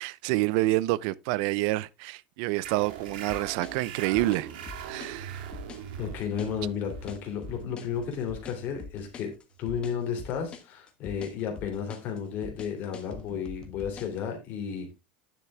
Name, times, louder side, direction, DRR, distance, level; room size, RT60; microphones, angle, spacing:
voice 1, 0.0-4.5 4.8-5.5, right 18 dB, 55° right, 0.5 m, -28 dB
sound 1, 2.6-9.8, right 8 dB, 75° right, 1.7 m, -42 dB
sound 2, 3.3-14.2, left 5 dB, 20° left, 1.3 m, -44 dB
voice 2, 6.0-9.3 9.6-14.9, left 7 dB, 35° left, 3.0 m, -33 dB
10.5 x 6.6 x 3.5 m
supercardioid pair, 160°, 5 cm